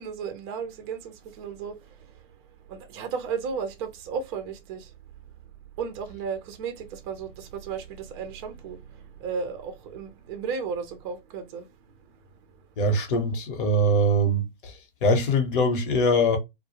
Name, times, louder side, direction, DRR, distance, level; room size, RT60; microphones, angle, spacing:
voice 1, 0.0-2.2 2.7-4.9 5.8-11.7, right 6 dB, 30° right, 0.5 m, -34 dB
voice 2, 12.8-16.4, equal, 60° left, 1.0 m, -23 dB
2.2 x 2.0 x 2.8 m
hypercardioid pair, 135°, 30 cm